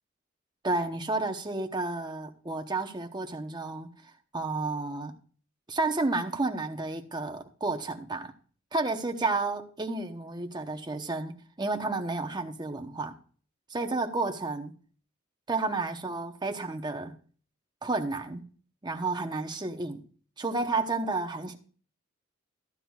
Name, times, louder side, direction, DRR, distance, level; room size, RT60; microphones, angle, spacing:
voice 1, 0.6-3.9 4.3-5.1 5.7-8.3 8.7-13.1 13.7-14.7 15.5-17.1 17.8-18.4 18.8-20.0 20.4-21.6, right 3 dB, 20° right, 0.9 m, -31 dB
14.5 x 9.8 x 2.4 m
head